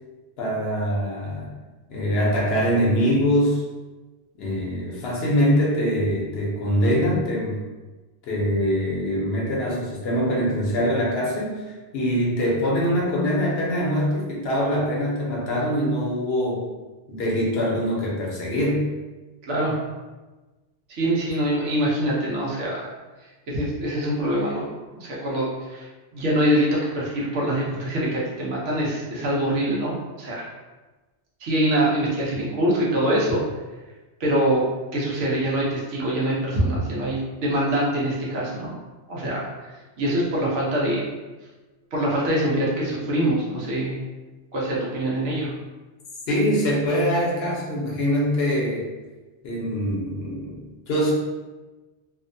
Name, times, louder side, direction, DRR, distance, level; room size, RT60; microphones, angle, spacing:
voice 1, 0.4-1.5 1.9-3.6 4.4-7.6 8.2-16.7 17.1-18.9 46.3-48.9 49.4-51.1, equal, 65° left, -4 dB, 0.9 m, -23 dB
voice 2, 20.9-22.9 23.5-24.7 25.0-30.4 31.4-33.4 34.2-34.6 34.9-38.8 39.1-39.7 40.0-41.1 41.9-44.0 44.5-45.5, right 1 dB, 85° right, -5 dB, 1.1 m, -24 dB
2.7 x 2.1 x 2.5 m, 1.2 s
omnidirectional pair, 1.2 m